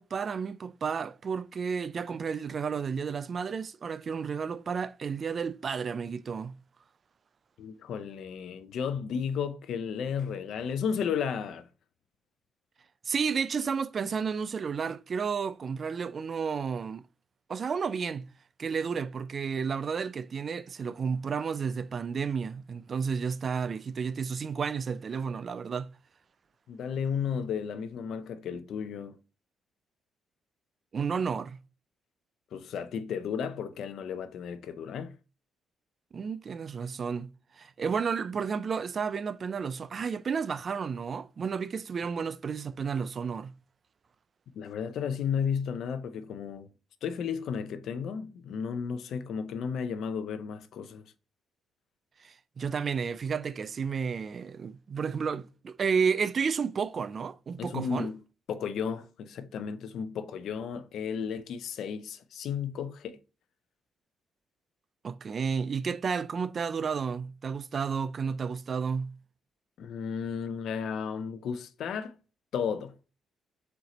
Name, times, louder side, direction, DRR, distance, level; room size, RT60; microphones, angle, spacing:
voice 1, 0.0-6.6 13.1-17.0 17.5-18.3 18.6-25.9 30.9-31.6 36.1-37.3 37.6-43.5 52.2-58.1 65.0-69.2, right 6 dB, 45° right, 0.3 m, -32 dB
voice 2, 7.6-11.7 26.7-29.2 32.5-35.1 44.5-46.7 47.0-51.1 57.6-58.2 58.5-63.2 69.8-72.2 72.5-73.0, left 7 dB, 70° left, 0.5 m, -33 dB
4.3 x 3.8 x 3.0 m
cardioid pair, 90°, 0 cm